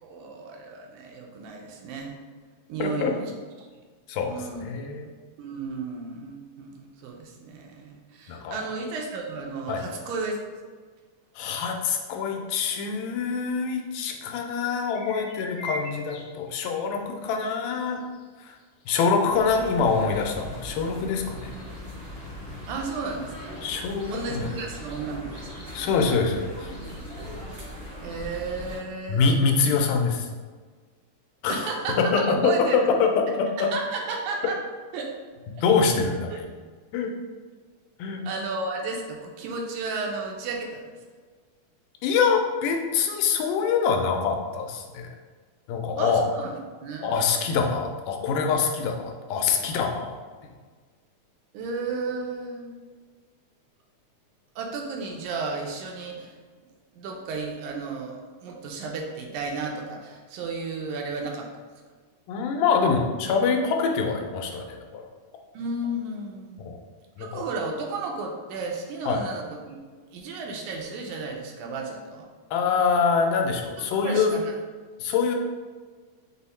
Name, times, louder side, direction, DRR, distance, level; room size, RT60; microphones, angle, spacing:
voice 1, 0.0-2.2 2.7-3.2 4.3-4.7 5.4-10.4 22.7-23.6 24.1-25.7 28.0-29.3 31.5-32.9 33.3-34.6 34.9-35.1 35.5-35.6 38.3-40.9 46.0-47.2 51.5-52.8 54.6-56.4 57.0-61.5 65.5-66.7 67.2-69.8 70.1-72.3 73.8-74.4, right 3 dB, 85° right, 1 dB, 2.0 m, -33 dB
voice 2, 2.8-3.1 4.1-5.1 8.3-8.6 9.7-9.8 11.4-18.0 18.4-18.5 18.9-21.5 23.6-24.5 25.7-26.7 29.1-30.3 31.4-31.7 32.0-33.1 33.4-33.5 35.6-36.5 36.9-37.1 38.0-38.2 42.0-45.1 45.7-46.2 47.0-50.2 62.3-65.1 66.6-66.8 67.2-67.4 69.1-69.2 72.5-74.4 75.0-75.4, left 5 dB, 90° left, 3 dB, 2.1 m, -25 dB
sound 1, 14.8-16.9 17.4-17.8 18.1-18.2 19.0-19.1, equal, 75° left, 2.0 m, -39 dB
sound 2, 19.3-28.8, equal, 35° right, 0.9 m, -39 dB
5.3 x 2.1 x 4.1 m, 1.5 s
omnidirectional pair, 3.6 m